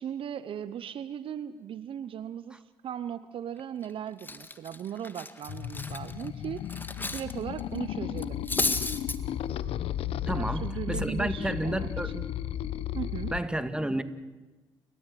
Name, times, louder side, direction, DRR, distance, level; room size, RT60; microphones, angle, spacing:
voice 1, 0.0-8.4 10.3-12.2 12.9-13.3, right 9 dB, 60° right, 1.0 m, -38 dB
Cutlery silverware, 3.6-3.9 4.2-7.3 7.6-7.8 8.2-9.2, left 2 dB, 20° left, 1.9 m, -33 dB
sound 1, 5.5-13.4, left 11 dB, 70° left, 1.1 m, -34 dB
voice 2, 10.3-12.2 13.3-14.0, right 1 dB, 10° right, 2.0 m, -31 dB
29.5 x 14.0 x 9.4 m
supercardioid pair, 55°, 10 cm